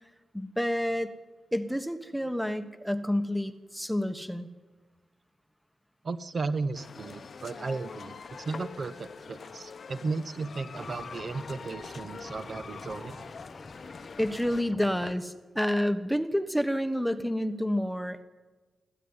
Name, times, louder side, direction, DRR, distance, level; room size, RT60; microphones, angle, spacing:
voice 1, 0.3-1.1 1.5-4.5 14.2-18.2, equal, ahead, 10 dB, 1.2 m, -29 dB
voice 2, 6.0-13.3, right 4 dB, 45° right, 12 dB, 1.0 m, -35 dB
sound 1, 6.7-14.6, left 5 dB, 50° left, 0.8 m, -44 dB
sound 2, 10.8-15.1, left 3 dB, 30° left, 1.4 m, -48 dB
26.0 x 15.0 x 9.7 m, 1.3 s
wide cardioid pair, 115°, 0 cm